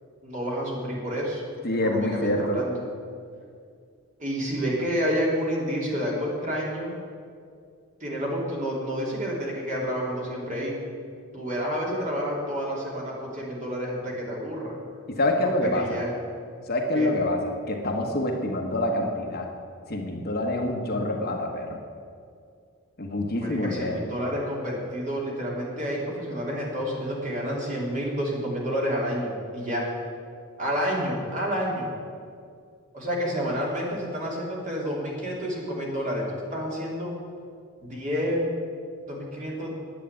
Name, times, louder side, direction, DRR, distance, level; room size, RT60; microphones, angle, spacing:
voice 1, 0.2-1.4 1.7-2.8 4.2-7.0 8.0-10.8 11.3-14.7 15.4-16.1 16.9-17.1 23.4-29.8 30.6-32.0 32.9-37.1 37.8-38.5 39.0-39.8, equal, 35° right, -3 dB, 3.0 m, -29 dB
voice 2, 1.6-2.6 15.1-16.0 16.7-19.5 19.9-21.8 23.0-24.0, left 1 dB, 45° left, 2 dB, 1.3 m, -26 dB
10.0 x 8.4 x 8.8 m, 2.2 s
head